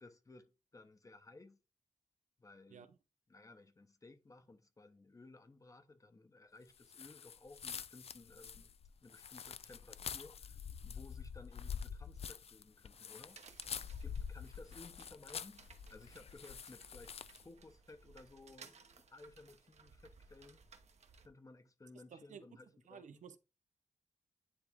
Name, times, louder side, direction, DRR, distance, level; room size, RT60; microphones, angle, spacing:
voice 1, 0.0-1.6 2.4-2.9 3.3-8.7 9.0-13.6 14.0-18.7 19.1-20.6 21.2-23.2, left 3 dB, 25° left, 0.9 m, -58 dB
sound 1, 6.9-17.5, left 7 dB, 55° left, 0.4 m, -46 dB
sound 2, 13.3-21.3, right 5 dB, 65° right, 1.0 m, -61 dB
voice 2, 21.9-22.6 22.9-23.4, right 6 dB, 90° right, 0.7 m, -54 dB
10.0 x 3.5 x 3.6 m
wide cardioid pair, 100°, 12 cm